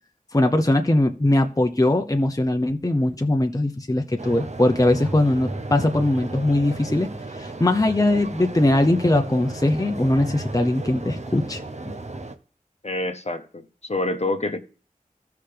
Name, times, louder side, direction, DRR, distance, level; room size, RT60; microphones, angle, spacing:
voice 1, 0.3-7.1 7.4-11.6 11.9-12.0, left 1 dB, 25° left, 0.8 m, -21 dB
sound 1, 4.2-12.4, right 2 dB, 50° right, 0.9 m, -34 dB
voice 2, 12.8-14.6, left 2 dB, 50° left, 0.9 m, -27 dB
15.5 x 5.8 x 3.4 m
wide cardioid pair, 50°, 14 cm